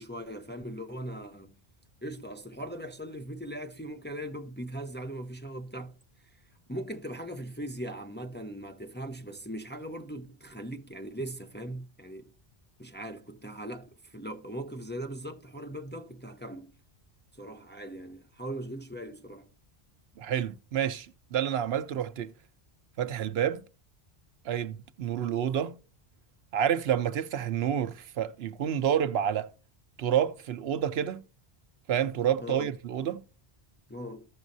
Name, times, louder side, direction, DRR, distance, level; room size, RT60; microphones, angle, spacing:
voice 1, 0.0-1.6 2.0-5.9 6.7-12.3 12.8-16.8 17.4-19.5 32.4-32.7 33.9-34.3, right 1 dB, 10° left, 0.6 m, -39 dB
voice 2, 20.2-22.3 23.0-23.6 24.4-25.8 26.5-29.5 30.0-31.2 31.9-33.2, right 9 dB, 75° right, 0.9 m, -29 dB
15.0 x 6.2 x 2.6 m
omnidirectional pair, 1.1 m